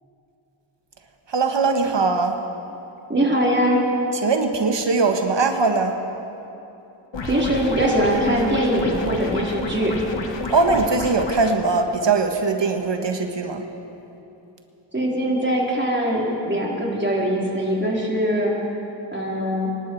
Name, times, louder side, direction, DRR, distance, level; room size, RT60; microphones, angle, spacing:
voice 1, 1.3-2.4 4.2-5.9 10.5-13.6, right 4 dB, 60° right, 5 dB, 1.4 m, -21 dB
voice 2, 3.1-3.8 7.2-10.0 14.9-18.5 19.1-19.7, equal, 20° right, -3 dB, 3.8 m, -22 dB
sound 1, 7.1-11.5, left 3 dB, 60° left, 1.5 m, -30 dB
25.0 x 12.0 x 4.6 m, 2.9 s
cardioid pair, 45°, 49 cm